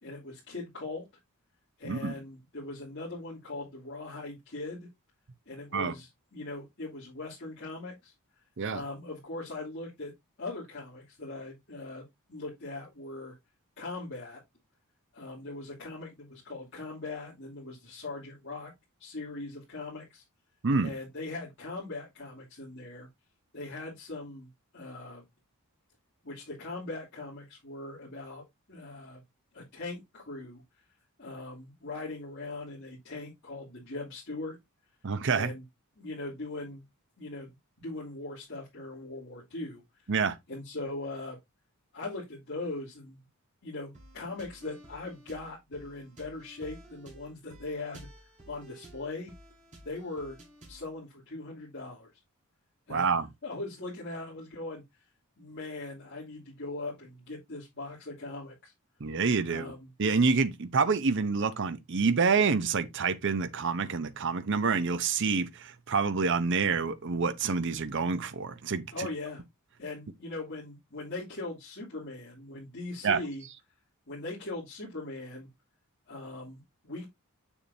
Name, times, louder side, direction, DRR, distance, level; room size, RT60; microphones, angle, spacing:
voice 1, 0.0-1.1 1.8-4.9 5.5-8.1 8.7-10.1 10.4-13.3 13.8-14.4 15.1-18.7 19.0-20.2 20.8-23.1 23.5-25.2 26.2-29.2 29.5-30.6 31.2-34.6 35.3-35.6 36.0-36.8 37.2-37.5 37.8-39.8 40.5-41.4 41.9-43.2 43.6-48.1 48.5-49.3 49.8-50.4 50.7-52.1 52.9-53.1 53.4-54.8 55.4-58.7 59.4-59.9 68.9-69.4 69.8-73.4 74.1-75.5 76.1-77.1, left 2 dB, 55° left, 3.0 m, -40 dB
voice 2, 35.0-35.5 40.1-40.4 52.9-53.3 59.0-59.7 60.0-69.1 73.0-73.2, right 5 dB, 55° right, 0.7 m, -27 dB
sound 1, 43.9-50.9, right 1 dB, 35° right, 3.7 m, -52 dB
7.2 x 6.8 x 2.7 m
head